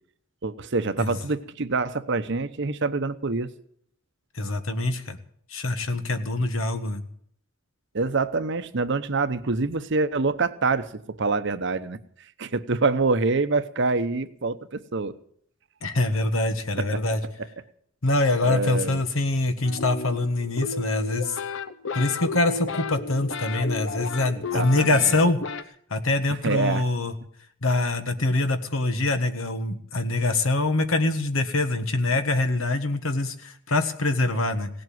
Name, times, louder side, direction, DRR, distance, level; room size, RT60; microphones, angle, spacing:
voice 1, 0.4-3.5 7.9-12.0 12.4-15.1 18.4-19.0 24.4-25.2 26.4-26.8, right 3 dB, 60° right, 12 dB, 0.9 m, -26 dB
voice 2, 4.3-5.2 5.5-7.0 15.8-17.2 18.0-21.4 21.9-25.4 25.9-27.1 27.6-34.7, left 2 dB, 85° left, 8 dB, 1.6 m, -24 dB
sound 1, 19.6-25.6, left 4 dB, 65° left, 0.9 m, -33 dB
17.5 x 7.8 x 9.5 m, 0.65 s
head